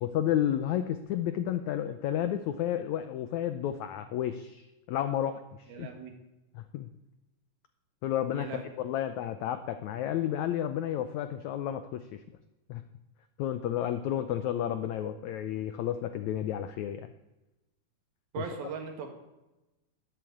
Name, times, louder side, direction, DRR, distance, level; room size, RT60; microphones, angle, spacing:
voice 1, 0.0-5.9 6.5-6.9 8.0-12.2 12.7-12.8 13.4-17.1, left 11 dB, 90° left, 10 dB, 1.6 m, -31 dB
voice 2, 5.7-6.1 8.3-8.6 18.3-19.1, right 6 dB, 90° right, 4 dB, 3.8 m, -38 dB
11.0 x 10.5 x 8.5 m, 1.0 s
omnidirectional pair, 4.2 m